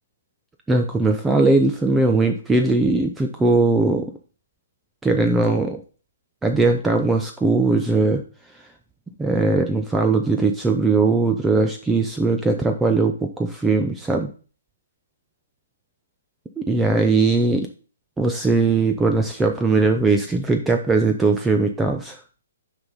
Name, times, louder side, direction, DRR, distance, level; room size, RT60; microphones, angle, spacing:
voice 1, 0.7-4.1 5.0-5.8 6.4-8.2 9.2-14.3 16.6-17.7 18.2-22.2, right 3 dB, 10° right, 4 dB, 0.6 m, -19 dB
6.7 x 5.5 x 3.9 m, 0.37 s
figure-of-eight pair, 135°, 0 cm